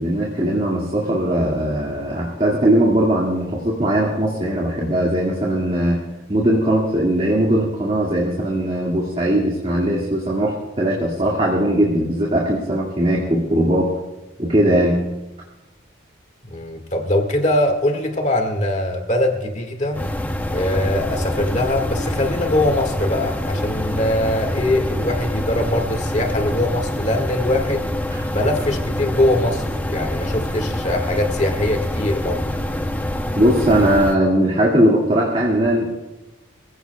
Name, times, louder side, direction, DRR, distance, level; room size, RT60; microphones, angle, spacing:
voice 1, 0.0-6.0 6.3-13.9 14.4-15.0 28.1-28.2 33.3-36.0, right 1 dB, 30° right, -4 dB, 2.0 m, -19 dB
voice 2, 16.5-20.0 20.5-27.9 28.3-32.5, left 1 dB, 35° left, 4 dB, 1.8 m, -22 dB
sound 1, 19.9-34.2, left 1 dB, 10° left, 0.7 m, -25 dB
24.0 x 16.0 x 2.3 m, 1.0 s
head